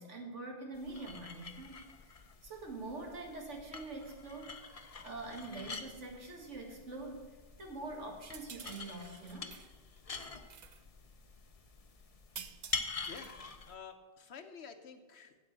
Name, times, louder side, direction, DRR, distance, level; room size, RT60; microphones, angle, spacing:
voice 1, 0.0-2.1 2.4-4.6 5.0-7.2 7.6-9.5, right 2 dB, 85° right, 1 dB, 2.2 m, -44 dB
sound 1, 0.7-13.7, left 4 dB, 35° left, 0.7 m, -46 dB
sound 2, 8.2-9.7 10.0-10.8 12.3-13.5, right 7 dB, 50° right, 0.6 m, -51 dB
voice 2, 13.0-13.4 13.7-15.4, left 6 dB, 65° left, 8 dB, 1.1 m, -50 dB
8.6 x 8.0 x 7.5 m, 1.4 s
omnidirectional pair, 1.2 m